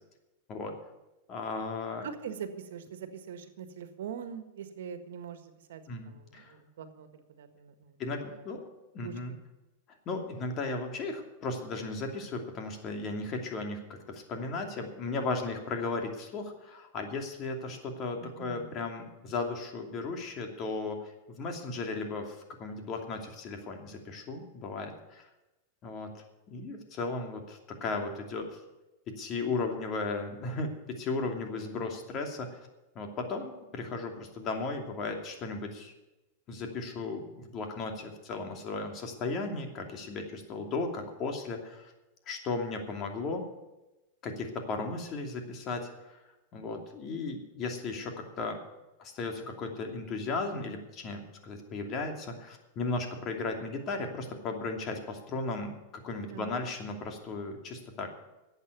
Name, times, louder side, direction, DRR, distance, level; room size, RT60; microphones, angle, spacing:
voice 1, 1.3-2.1 5.9-6.5 8.0-8.7 8.9-9.3 10.1-13.8 14.1-25.3 25.8-26.1 26.5-28.6 29.1-32.7 32.9-35.9 36.5-41.9 42.3-43.4 44.2-46.2 46.5-48.6 49.0-58.1, left 3 dB, 40° left, 3 dB, 2.7 m, -36 dB
voice 2, 2.0-7.9 8.3-8.4 9.0-9.4 18.2-18.7 56.3-56.6, right 7 dB, 80° right, 8 dB, 1.6 m, -43 dB
11.0 x 8.2 x 9.5 m, 1.0 s
hypercardioid pair, 115°, 0 cm